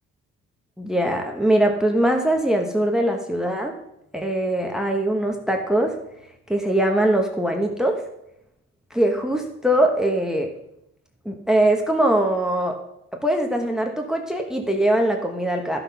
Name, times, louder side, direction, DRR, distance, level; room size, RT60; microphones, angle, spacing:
voice 1, 0.8-3.7 4.1-6.0 6.5-8.0 8.9-10.5 11.2-12.8 13.1-15.8, right 1 dB, ahead, 3 dB, 1.1 m, -22 dB
11.5 x 5.9 x 5.7 m, 0.82 s
cardioid pair, 90°, 30 cm